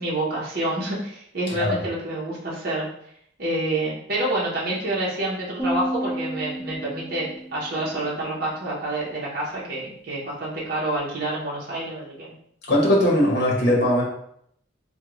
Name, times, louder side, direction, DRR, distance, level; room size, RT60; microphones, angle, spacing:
voice 1, 0.0-2.9 3.4-12.3, right 1 dB, 50° right, -6 dB, 0.8 m, -28 dB
sound 1, 5.6-8.0, right 1 dB, 10° right, 1.5 m, -31 dB
voice 2, 12.7-14.0, left 1 dB, 55° left, -3 dB, 0.8 m, -19 dB
3.5 x 2.2 x 3.0 m, 0.71 s
head